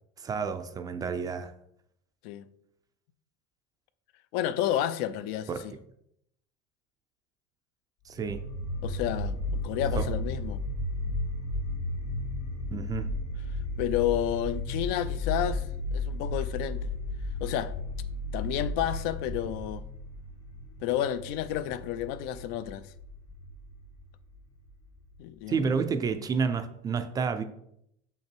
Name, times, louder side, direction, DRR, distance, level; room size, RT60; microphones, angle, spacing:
voice 1, 0.2-1.5 5.5-5.6 8.0-8.4 10.0-10.1 12.7-13.1 25.5-27.4, right 5 dB, 20° right, 0.4 m, -30 dB
voice 2, 4.3-5.5 8.8-10.6 13.8-15.7 15.9-16.9 17.4-17.7 18.3-19.8 20.8-22.9 25.2-25.6, left 11 dB, 55° left, 0.5 m, -30 dB
sound 1, 8.1-25.2, left 1 dB, 90° left, 2.5 m, -34 dB
6.7 x 5.8 x 4.5 m
cardioid pair, 165°, 19 cm